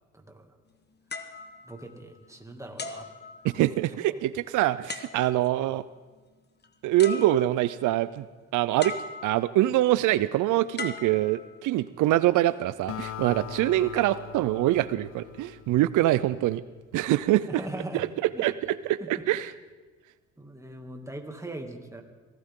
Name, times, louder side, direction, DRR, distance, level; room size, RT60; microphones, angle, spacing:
voice 1, 0.1-0.5 1.6-3.1 3.5-3.7 17.4-18.0 18.3-18.4 19.0-19.2 20.4-22.0, right 1 dB, 10° right, 3 dB, 2.4 m, -40 dB
sound 1, 1.1-2.3 2.8-3.9 4.9-5.6 6.6-6.7 7.0-7.8 8.8-9.6 10.8-11.9 12.6-12.9, left 4 dB, 35° left, 1.3 m, -39 dB
voice 2, 3.4-5.8 6.8-8.3 8.5-9.0 9.2-16.6 16.9-17.5 17.9-18.1 18.4-19.5, right 15 dB, 85° right, 16 dB, 0.5 m, -24 dB
Acoustic guitar, 12.9-16.5, left 10 dB, 50° left, 0.7 m, -41 dB
23.5 x 16.5 x 3.7 m, 1.3 s
cardioid pair, 90°, 30 cm